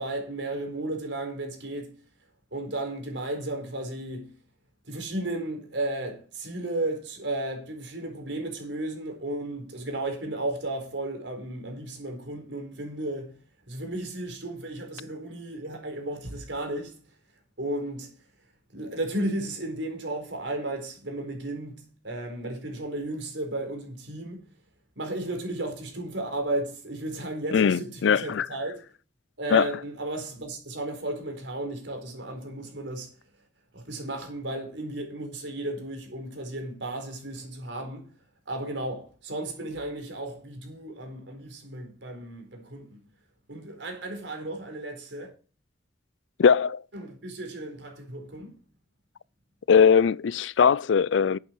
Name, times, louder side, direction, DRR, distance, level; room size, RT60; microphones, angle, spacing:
voice 1, 0.0-2.0 2.5-4.3 4.8-13.4 13.7-17.0 17.6-18.2 18.7-24.4 25.0-28.8 29.4-33.1 33.7-38.1 38.5-43.0 43.5-45.3 46.9-48.6, right 1 dB, 85° right, 4.4 m, -34 dB
voice 2, 27.5-28.5 29.5-29.7 46.4-46.8 49.7-51.4, left 6 dB, 90° left, 0.4 m, -20 dB
11.5 x 8.4 x 4.6 m
head